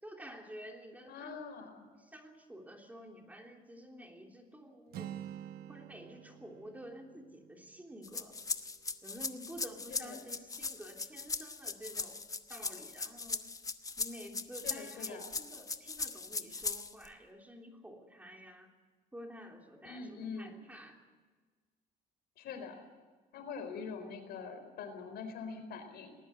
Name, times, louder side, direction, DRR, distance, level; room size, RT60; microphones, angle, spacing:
voice 1, 0.0-5.1 5.7-8.3 9.0-13.4 14.0-18.7 19.1-21.0, equal, 10° right, 2 dB, 3.2 m, -50 dB
voice 2, 1.1-1.9 9.9-10.2 14.6-15.3 19.8-20.5 22.4-22.8 23.3-26.1, left 5 dB, 70° left, 7 dB, 4.4 m, -44 dB
Acoustic guitar, 4.9-8.8, right 11 dB, 65° right, 1.1 m, -49 dB
sound 1, 8.0-17.1, left 4 dB, 20° left, 1.0 m, -39 dB
19.5 x 19.0 x 8.2 m, 1.4 s
cardioid pair, 110°, 17 cm